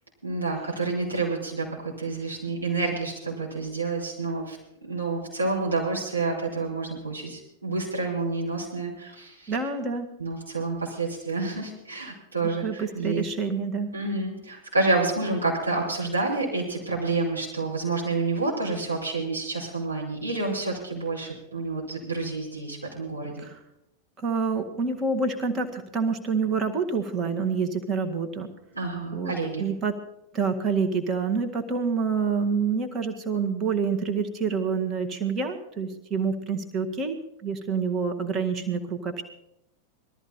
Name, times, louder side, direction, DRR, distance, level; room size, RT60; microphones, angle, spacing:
voice 1, 0.2-4.6 4.9-9.6 10.2-13.2 13.9-23.5 28.7-29.7, right 3 dB, 80° right, -4 dB, 5.2 m, -29 dB
voice 2, 9.5-10.1 12.6-13.9 23.4-23.6 24.2-28.5 29.1-29.3 29.6-30.0 30.3-39.2, right 5 dB, 25° right, 6 dB, 1.8 m, -27 dB
20.0 x 13.5 x 4.3 m, 0.82 s
figure-of-eight pair, 90°, 0 cm